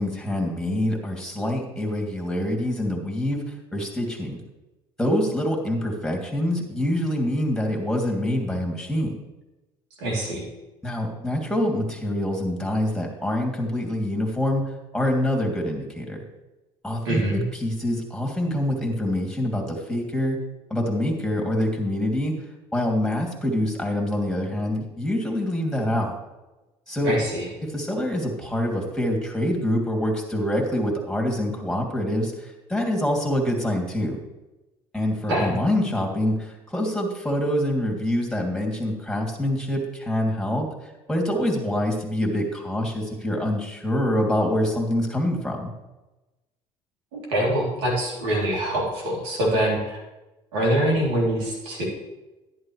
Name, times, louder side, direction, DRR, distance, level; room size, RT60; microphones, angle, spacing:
voice 1, 0.0-3.4 3.7-4.4 5.0-9.2 10.8-14.7 14.9-16.2 16.8-20.4 20.7-22.3 22.7-26.2 26.9-27.1 27.6-34.2 34.9-40.7 41.1-45.7, left 1 dB, 5° left, 0 dB, 2.8 m, -25 dB
voice 2, 10.0-10.4 17.0-17.4 27.0-27.5 35.3-35.5 47.1-50.0 50.5-51.9, right 1 dB, 90° right, -2 dB, 3.3 m, -24 dB
11.0 x 10.5 x 3.3 m, 1.1 s
supercardioid pair, 85°, 12 cm